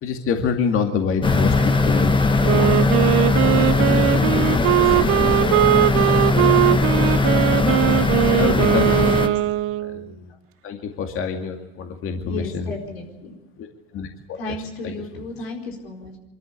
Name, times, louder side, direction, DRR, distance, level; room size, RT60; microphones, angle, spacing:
voice 1, 0.0-2.2 2.5-2.8 3.5-5.8 6.9-7.2 7.7-8.0 8.2-9.3 9.8-10.3 10.6-12.7 13.6-13.7 13.9-14.4 14.8-14.9, left 6 dB, 45° left, 3 dB, 2.3 m, -27 dB
sound 1, 1.2-9.3, left 3 dB, 15° left, 1.5 m, -19 dB
Wind instrument woodwind instrument, 2.4-10.1, right 17 dB, 45° right, 0.6 m, -20 dB
voice 2, 9.0-9.3 12.2-13.3 14.4-16.2, left 2 dB, 85° left, 1 dB, 4.7 m, -34 dB
24.0 x 13.5 x 8.4 m, 1.1 s
hypercardioid pair, 90°, 30 cm